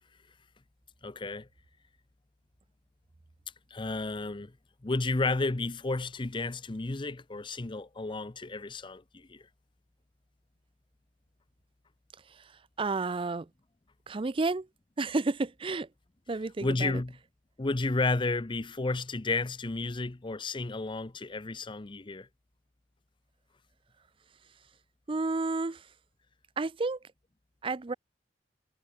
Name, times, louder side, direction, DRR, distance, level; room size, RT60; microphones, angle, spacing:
voice 1, 1.0-1.5 3.7-4.5 4.8-9.5 16.6-17.2 17.6-22.3, left 3 dB, 25° left, 0.7 m, -32 dB
voice 2, 12.8-13.5 14.1-14.7 15.0-15.9 16.3-16.9 25.1-25.8 26.6-27.0 27.6-27.9, right 3 dB, 30° right, 0.5 m, -31 dB
head